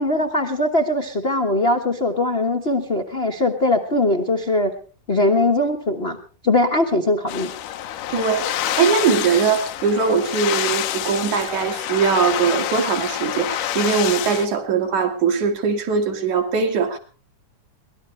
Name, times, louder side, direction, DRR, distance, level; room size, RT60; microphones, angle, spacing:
voice 1, 0.0-4.7 5.1-6.2 6.4-7.5, left 2 dB, 40° left, 0.8 m, -20 dB
sound 1, 7.3-14.5, left 12 dB, 85° left, 2.6 m, -27 dB
voice 2, 8.1-17.0, right 5 dB, 70° right, 3.7 m, -21 dB
23.0 x 18.5 x 3.3 m
omnidirectional pair, 3.6 m